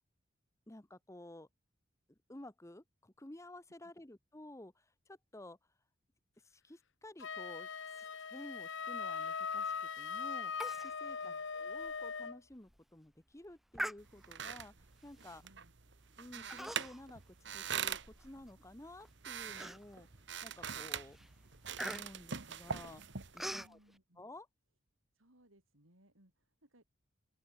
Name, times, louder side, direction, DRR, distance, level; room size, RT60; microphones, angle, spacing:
voice 1, 0.7-1.5 2.3-5.6 6.4-10.5 10.8-15.4 16.2-20.1 20.4-21.4 21.8-23.0 23.3-23.8 24.2-24.5, left 1 dB, 15° left, 1.0 m, -53 dB
Wind instrument woodwind instrument, 7.2-12.4, left 6 dB, 65° left, 1.0 m, -40 dB
Human voice, 10.6-10.9 11.2-11.3 11.9-12.0 12.5-12.8 13.7-14.5 15.2-15.5 16.5-17.1 17.5-18.5 19.0-19.1 19.6-20.1 20.6-20.9 21.1-23.7, equal, ahead, 0.5 m, -44 dB
sound 1, 14.0-23.7, right 7 dB, 60° right, 1.5 m, -44 dB
voice 2, 15.4-15.7 23.5-24.2 25.1-26.8, right 1 dB, 80° right, 6.9 m, -66 dB
open air
head